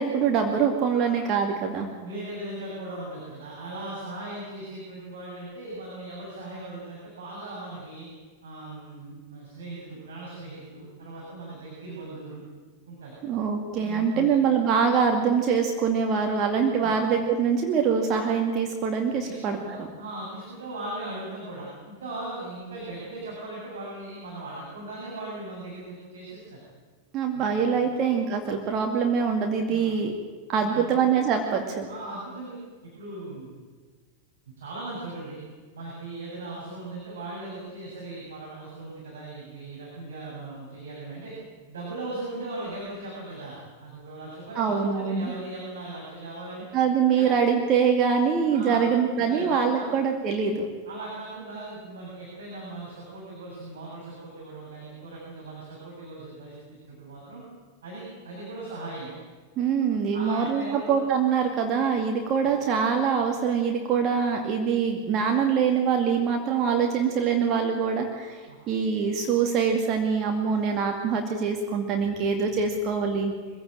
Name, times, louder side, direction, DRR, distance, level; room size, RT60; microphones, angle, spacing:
voice 1, 0.0-1.9 13.2-19.9 27.1-30.1 30.5-31.9 44.6-45.3 46.7-50.7 59.6-73.3, right 6 dB, 35° right, 3 dB, 2.4 m, -24 dB
voice 2, 2.0-8.1 8.4-12.4 12.9-13.2 13.8-14.4 16.8-17.0 19.2-26.6 27.3-28.0 29.7-29.9 30.5-31.0 31.9-32.6 32.8-33.5 34.6-35.4 35.7-41.3 41.7-46.7 47.1-47.3 48.5-48.9 49.2-49.9 50.9-56.5 56.9-57.4 57.8-59.1 60.1-61.0 68.5-68.6, right 2 dB, 65° right, -4 dB, 7.4 m, -38 dB
24.0 x 16.0 x 9.0 m, 1.5 s
figure-of-eight pair, 90°, 0 cm